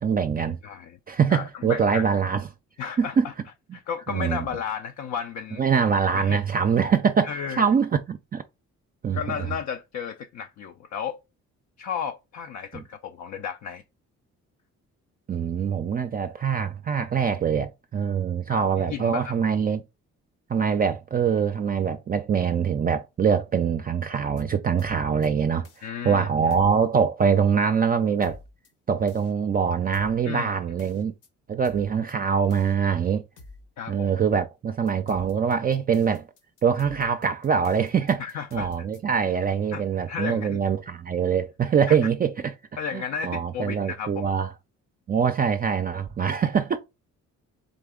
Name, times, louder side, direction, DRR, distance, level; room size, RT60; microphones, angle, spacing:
voice 1, 0.0-0.6 1.1-2.4 3.0-3.3 4.1-4.5 5.6-7.3 7.6-8.4 9.0-9.2 12.7-12.8 15.3-19.8 20.5-25.7 26.0-28.4 28.9-31.1 31.5-33.2 33.9-36.3 36.6-38.2 38.5-42.5 42.9-44.5 45.1-46.8, right 7 dB, 30° right, 0.4 m, -24 dB
voice 2, 0.6-1.0 1.3-2.1 2.8-3.3 3.7-5.6 6.1-6.4 7.2-7.7 9.1-11.2 11.8-13.8 18.5-19.3 25.8-26.5 30.3-30.5 33.8-34.1 38.2-38.7 39.7-40.6 41.9-42.0 42.8-44.3, left 7 dB, 65° left, 0.5 m, -33 dB
sound 1, 24.1-24.4 24.8-25.3 25.6-25.9 26.5-26.8 28.2-28.7 29.1-29.3 29.9-30.2 30.8-31.3 31.6-32.1 32.5-32.7 33.4-33.7 34.9-39.0, left 2 dB, 80° left, 1.2 m, -48 dB
3.8 x 3.4 x 3.6 m
cardioid pair, 90°, 30 cm